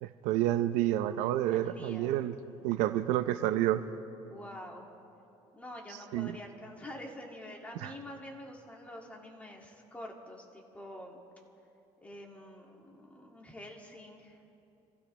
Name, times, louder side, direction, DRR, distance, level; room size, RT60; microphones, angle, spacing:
voice 1, 0.0-2.3 2.6-3.8 6.1-6.3 7.8-7.9, right 13 dB, 85° right, 11 dB, 0.7 m, -29 dB
voice 2, 1.5-2.2 4.3-4.9 5.5-11.2 12.0-14.4, left 1 dB, 10° left, 0 dB, 2.2 m, -47 dB
27.5 x 15.5 x 3.2 m, 2.7 s
cardioid pair, 130°, 12 cm